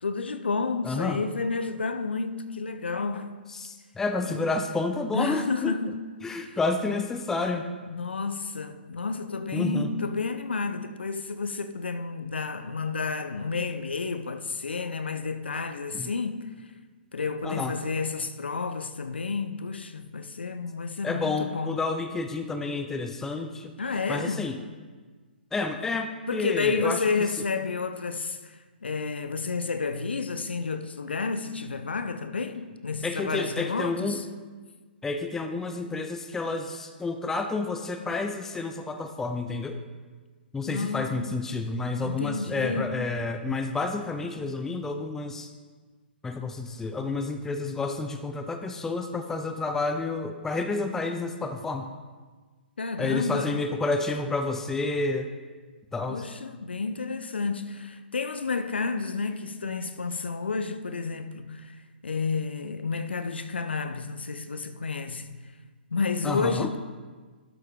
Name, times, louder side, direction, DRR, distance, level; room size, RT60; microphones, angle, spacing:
voice 1, 0.0-3.5 4.2-4.4 5.1-6.6 7.9-16.6 17.1-21.8 23.8-24.5 26.3-34.3 40.7-41.3 42.0-42.9 52.8-53.7 56.1-61.8 62.0-65.3 65.9-66.8, left 4 dB, 70° left, 0.7 m, -31 dB
voice 2, 0.8-1.2 3.5-5.8 6.2-7.7 9.5-9.9 15.9-16.1 17.4-17.8 21.0-23.7 24.1-24.6 25.5-27.0 33.0-34.2 35.0-39.8 40.5-45.5 46.2-51.9 53.0-55.3 55.9-56.2 66.2-66.7, left 3 dB, 5° left, 0.4 m, -30 dB
12.0 x 6.3 x 3.6 m
figure-of-eight pair, 120°, 6 cm